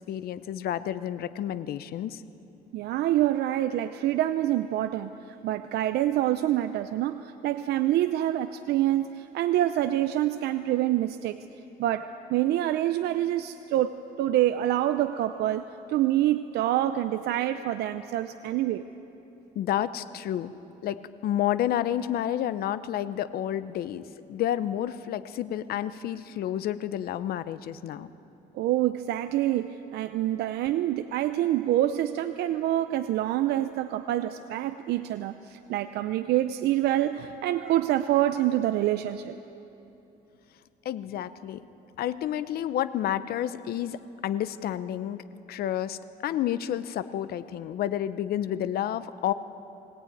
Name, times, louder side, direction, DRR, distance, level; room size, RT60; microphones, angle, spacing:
voice 1, 0.1-2.2 19.5-20.5 20.8-28.1 40.8-41.7 42.0-49.3, left 11 dB, 65° left, 13 dB, 0.8 m, -30 dB
voice 2, 2.7-11.4 11.8-18.8 28.5-39.4, right 13 dB, 75° right, 10 dB, 0.6 m, -26 dB
21.5 x 17.5 x 9.2 m, 3.0 s
cardioid pair, 110°, 17 cm